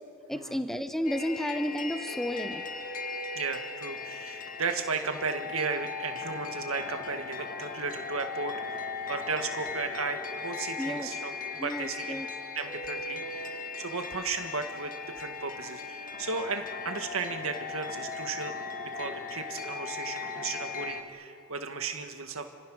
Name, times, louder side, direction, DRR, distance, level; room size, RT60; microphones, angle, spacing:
voice 1, 0.3-2.6 10.8-11.1 11.6-12.3, equal, ahead, 8 dB, 0.9 m, -32 dB
sound 1, 1.1-21.0, left 4 dB, 40° left, 1.7 m, -38 dB
voice 2, 3.4-12.2 12.6-18.5 18.9-22.5, right 4 dB, 75° right, 6 dB, 1.7 m, -35 dB
30.0 x 25.5 x 6.4 m, 2.7 s
head